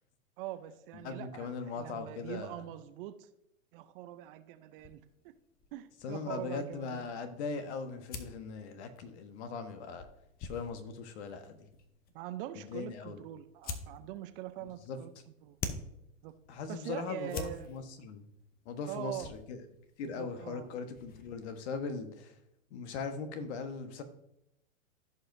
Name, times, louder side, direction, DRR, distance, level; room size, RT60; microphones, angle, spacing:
voice 1, 0.4-3.3 3.7-5.3 5.7-7.1 12.1-15.1 15.4-15.6 16.2-16.3 16.7-17.7 18.9-19.3 20.0-20.7, right 13 dB, 40° right, 11 dB, 0.7 m, -43 dB
voice 2, 1.0-2.6 6.0-10.1 10.4-11.7 12.6-13.2 14.6-15.0 16.5-18.2 18.6-19.6 20.0-22.4 22.7-24.0, left 5 dB, 55° left, 8 dB, 1.3 m, -40 dB
sound 1, 4.8-21.6, left 5 dB, 25° left, 0.8 m, -49 dB
15.0 x 5.4 x 2.7 m, 0.82 s
hypercardioid pair, 115°, 40 cm